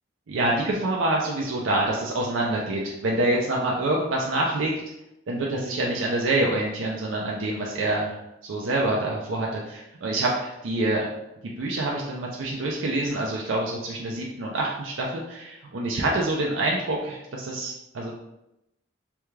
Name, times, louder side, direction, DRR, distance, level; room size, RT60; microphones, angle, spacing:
voice 1, 0.3-4.7 5.3-8.2 8.4-11.1 11.6-18.1, right 2 dB, 80° right, -2 dB, 0.5 m, -26 dB
3.4 x 2.3 x 3.2 m, 0.86 s
head